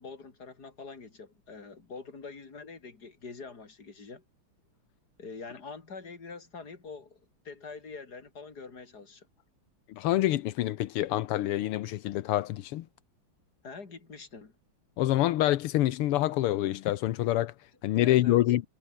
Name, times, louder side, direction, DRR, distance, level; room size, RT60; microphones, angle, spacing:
voice 1, 0.0-4.2 5.2-9.3 13.6-14.5 17.9-18.4, left 4 dB, 45° left, 3.8 m, -45 dB
voice 2, 9.9-12.9 15.0-17.5 17.8-18.6, left 14 dB, 85° left, 1.8 m, -26 dB
omnidirectional pair, 2.4 m